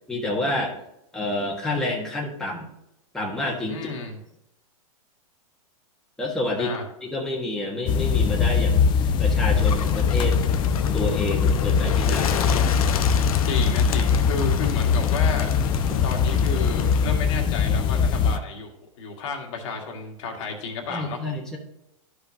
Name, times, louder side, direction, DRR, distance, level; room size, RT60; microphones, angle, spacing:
voice 1, 0.1-0.7 1.1-2.7 3.1-3.9 6.2-6.7 7.0-8.9 9.2-10.4 10.9-12.5 20.9-21.6, left 1 dB, 5° left, -4 dB, 1.5 m, -28 dB
voice 2, 3.7-4.2 6.6-6.8 13.4-15.5 16.0-21.2, left 4 dB, 60° left, 2 dB, 1.8 m, -32 dB
sound 1, 7.9-18.4, left 6 dB, 25° left, 0.5 m, -21 dB
Bird, 9.5-17.1, left 8 dB, 80° left, 0.8 m, -32 dB
13.0 x 5.1 x 2.8 m, 0.82 s
hypercardioid pair, 130°, 18 cm